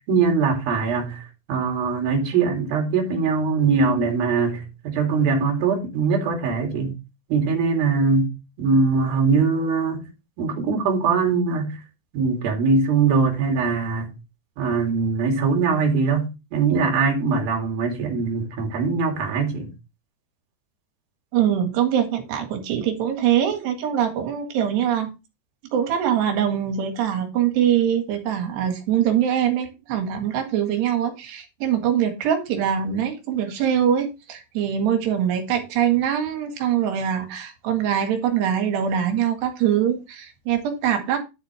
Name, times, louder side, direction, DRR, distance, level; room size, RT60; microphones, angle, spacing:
voice 1, 0.1-7.0 7.3-10.0 10.4-11.8 12.1-14.2 14.6-19.7, right 4 dB, 60° right, 4.1 m, -22 dB
voice 2, 21.3-25.1 25.7-41.2, right 9 dB, 75° right, 3.9 m, -23 dB
10.5 x 8.1 x 3.3 m
omnidirectional pair, 4.9 m